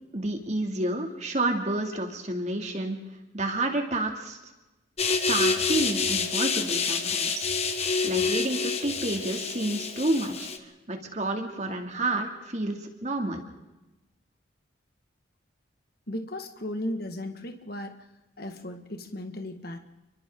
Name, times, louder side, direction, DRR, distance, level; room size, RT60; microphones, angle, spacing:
voice 1, 0.1-3.0 3.3-4.4 5.3-7.5 8.0-10.5 10.9-13.4, right 2 dB, 35° right, 3 dB, 2.6 m, -29 dB
sound 1, 5.0-10.6, left 4 dB, 35° left, 1.4 m, -27 dB
voice 2, 16.1-17.9 18.4-19.8, left 1 dB, 50° left, 6 dB, 1.8 m, -35 dB
29.5 x 23.5 x 3.9 m, 1.0 s
head